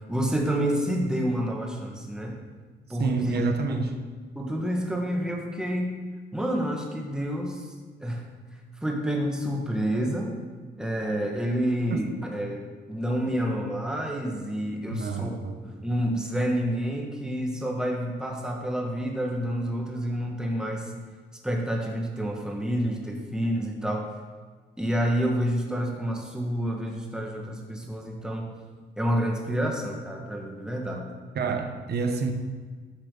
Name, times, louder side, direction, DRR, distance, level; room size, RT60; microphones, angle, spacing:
voice 1, 0.1-2.4 2.9-3.4 3.7-3.8 4.3-5.9 6.3-7.6 8.0-8.3 8.8-10.4 10.8-15.3 15.6-20.9 21.4-24.1 24.8-28.5 29.0-31.1, equal, 5° right, 0 dB, 1.7 m, -28 dB
voice 2, 3.0-3.9 14.9-15.6 31.3-32.3, right 4 dB, 55° right, 5 dB, 1.1 m, -27 dB
11.5 x 6.5 x 3.9 m, 1.5 s
cardioid pair, 90°, 20 cm